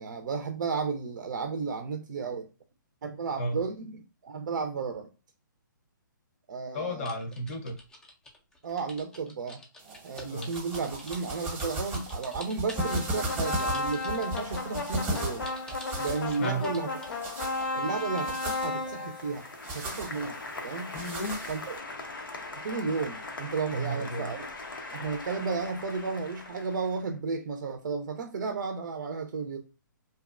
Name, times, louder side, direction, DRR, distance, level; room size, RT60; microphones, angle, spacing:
voice 1, 0.0-2.5 3.0-5.1 6.5-7.2 8.6-9.6 10.0-15.5 16.0-16.9 17.7-20.4 20.6-20.9 21.5-21.8 22.6-24.4 24.9-29.6, right 4 dB, 65° right, 0.4 m, -33 dB
voice 2, 6.7-7.8 10.3-10.5 16.3-16.6 20.9-21.4 23.7-24.3, right 1 dB, 40° left, 0.7 m, -33 dB
sound 1, 7.1-18.3, left 1 dB, 5° left, 0.4 m, -48 dB
sound 2, 9.8-21.8, right 1 dB, 15° right, 0.8 m, -37 dB
sound 3, 12.7-26.9, left 3 dB, 85° left, 0.6 m, -36 dB
2.6 x 2.1 x 2.4 m
hypercardioid pair, 140°, 11 cm